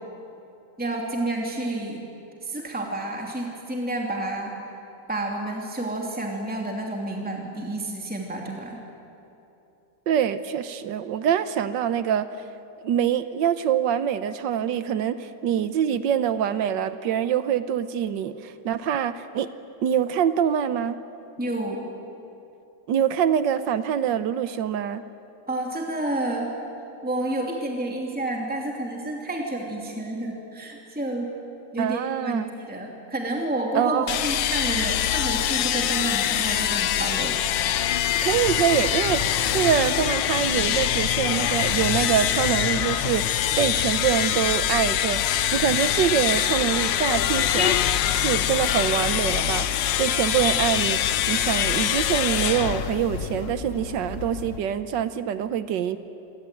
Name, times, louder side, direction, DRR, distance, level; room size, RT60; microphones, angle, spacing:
voice 1, 0.8-2.0 2.4-4.5 5.1-8.8 21.4-21.9 25.5-26.6 27.0-31.3 31.7-37.4, right 1 dB, 5° right, 0 dB, 2.9 m, -30 dB
voice 2, 10.1-12.3 12.8-19.5 19.8-21.0 22.9-25.0 31.8-32.5 33.7-34.2 38.2-47.8 48.1-51.0 51.3-56.0, right 9 dB, 85° right, 12 dB, 1.5 m, -25 dB
sound 1, 34.1-53.5, left 11 dB, 90° left, 1.5 m, -24 dB
sound 2, 38.7-54.6, left 4 dB, 45° left, 1.7 m, -37 dB
27.5 x 23.5 x 9.2 m, 2.9 s
omnidirectional pair, 1.9 m